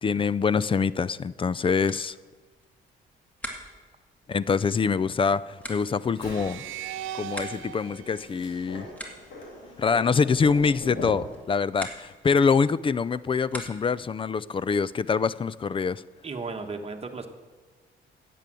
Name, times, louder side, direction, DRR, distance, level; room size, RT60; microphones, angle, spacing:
voice 1, 0.0-2.1 4.3-6.7 7.1-8.9 9.8-16.0, left 5 dB, 25° left, 19 dB, 0.4 m, -25 dB
sound 1, 1.8-14.1, equal, 5° left, 2.2 m, -46 dB
sound 2, 6.2-11.4, left 1 dB, 75° left, 3.2 m, -41 dB
sound 3, 6.2-9.4, right 10 dB, 80° right, 0.6 m, -40 dB
voice 2, 16.2-17.3, right 4 dB, 30° right, 4 dB, 1.4 m, -34 dB
10.5 x 8.4 x 7.6 m, 1.3 s
cardioid pair, 90°, 20 cm